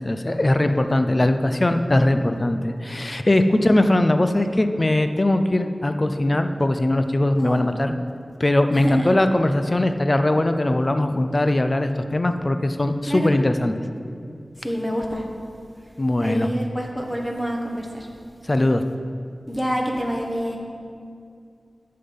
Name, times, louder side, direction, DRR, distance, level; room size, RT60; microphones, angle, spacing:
voice 1, 0.0-7.9 8.4-13.8 16.0-16.5 18.5-18.8, left 1 dB, 35° left, 8 dB, 0.6 m, -20 dB
voice 2, 8.7-9.1 13.1-13.3 14.6-15.2 16.2-18.1 19.5-20.6, equal, 10° left, -1 dB, 1.4 m, -27 dB
10.0 x 7.7 x 5.5 m, 2.4 s
wide cardioid pair, 60°, 0 cm